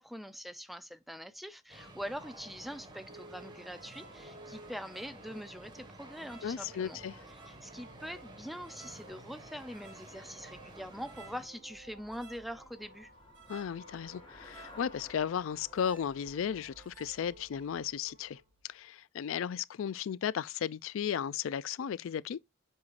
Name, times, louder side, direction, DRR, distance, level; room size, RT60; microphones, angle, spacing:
voice 1, 0.0-7.0 7.5-13.1, equal, ahead, 0.4 m, -43 dB
sound 1, 1.7-11.5, right 1 dB, 20° right, 1.5 m, -52 dB
sound 2, 3.1-18.4, right 3 dB, 60° right, 1.9 m, -56 dB
voice 2, 6.4-7.2 13.5-18.4 18.7-22.4, left 8 dB, 75° left, 0.3 m, -35 dB
Traffic noise roadway noise / Bicycle, 10.1-18.8, left 1 dB, 25° left, 1.9 m, -58 dB
7.8 x 5.5 x 2.5 m
head